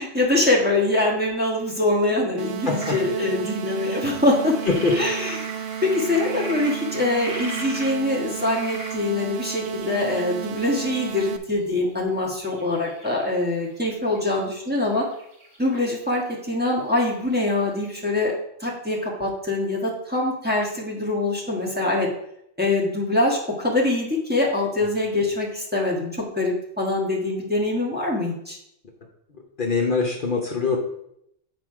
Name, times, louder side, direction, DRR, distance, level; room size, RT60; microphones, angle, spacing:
voice 1, 0.0-4.6 4.9-15.0 15.6-18.3 18.6-22.1 22.6-28.6, left 2 dB, 10° right, -4 dB, 1.5 m, -24 dB
sound 1, 2.4-11.4, right 9 dB, 70° right, 0.8 m, -33 dB
voice 2, 2.7-3.0 4.7-4.9 29.6-30.8, left 4 dB, 50° left, 0 dB, 1.0 m, -23 dB
sound 2, 2.7-7.9 8.3-10.8 12.4-13.3 13.6-13.9 14.1-16.4 16.7-16.8 17.0-17.1 17.3-17.4 17.6-17.7 17.9-18.0, right 1 dB, 35° right, 1.3 m, -38 dB
8.2 x 4.2 x 4.8 m, 0.76 s
omnidirectional pair, 1.2 m